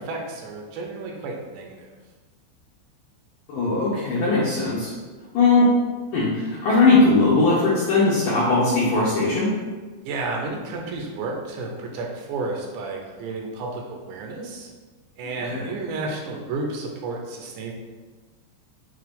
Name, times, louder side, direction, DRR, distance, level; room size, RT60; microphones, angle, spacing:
voice 1, 0.0-1.9 10.0-14.7 15.2-17.7, right 3 dB, 80° right, 1 dB, 2.8 m, -32 dB
voice 2, 3.5-4.9 5.3-5.7 6.1-9.5 15.5-15.7, left 3 dB, 75° left, -8 dB, 2.0 m, -19 dB
7.8 x 2.8 x 5.1 m, 1.4 s
omnidirectional pair, 5.3 m